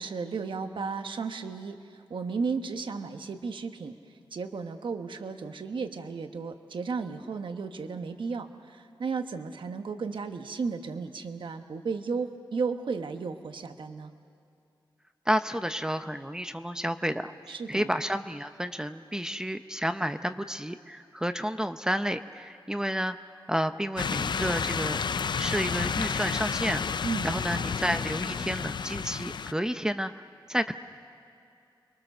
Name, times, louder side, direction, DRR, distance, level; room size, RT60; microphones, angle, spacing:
voice 1, 0.0-1.8 2.1-3.9 4.3-14.1 17.5-17.9 27.0-27.6, right 5 dB, 70° right, 7 dB, 1.2 m, -34 dB
voice 2, 15.3-23.2 23.5-25.0 25.4-30.7, equal, 10° right, 9 dB, 0.7 m, -31 dB
sound 1, 24.0-29.5, left 6 dB, 60° left, 0.5 m, -31 dB
29.5 x 22.5 x 6.6 m, 2.6 s
wide cardioid pair, 95°, 9 cm